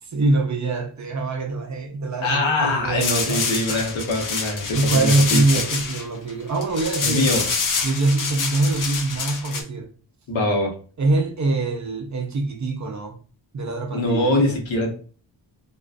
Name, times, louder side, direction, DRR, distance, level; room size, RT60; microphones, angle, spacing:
voice 1, 0.1-3.8 4.7-7.3 7.8-9.9 11.0-13.2 13.5-14.6, right 2 dB, 40° right, 0.5 m, -24 dB
voice 2, 2.2-5.4 7.0-7.5 10.3-10.7 13.9-14.9, left 2 dB, 85° left, 0.9 m, -23 dB
sound 1, 3.0-9.6, left 5 dB, 45° left, 0.5 m, -26 dB
2.4 x 2.3 x 2.4 m
wide cardioid pair, 150°, 45 cm